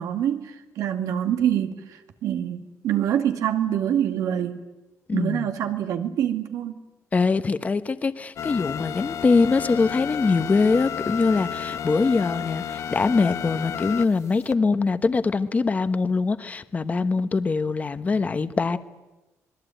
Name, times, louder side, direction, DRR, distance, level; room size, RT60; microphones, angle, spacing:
voice 1, 0.0-4.6 5.1-6.8, right 10 dB, 90° right, 6 dB, 2.2 m, -25 dB
voice 2, 5.1-5.5 7.1-18.8, left 4 dB, 25° left, 11 dB, 1.1 m, -23 dB
sound 1, 8.4-14.5, left 8 dB, 60° left, 0.9 m, -32 dB
26.5 x 21.0 x 9.2 m, 1.1 s
cardioid pair, 135°, 6 cm